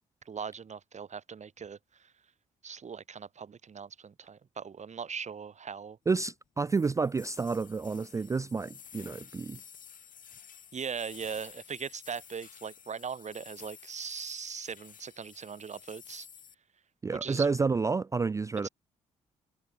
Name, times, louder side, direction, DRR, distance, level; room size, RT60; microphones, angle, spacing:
voice 1, 0.2-2.1 2.6-6.0 10.7-16.3 17.1-17.5 18.6-18.7, right 6 dB, 50° right, 3.0 m, -40 dB
voice 2, 6.1-9.6 17.0-18.7, right 4 dB, 20° right, 0.3 m, -30 dB
sound 1, 6.7-16.5, left 8 dB, 60° left, 7.5 m, -52 dB
hypercardioid pair, 45°, 16 cm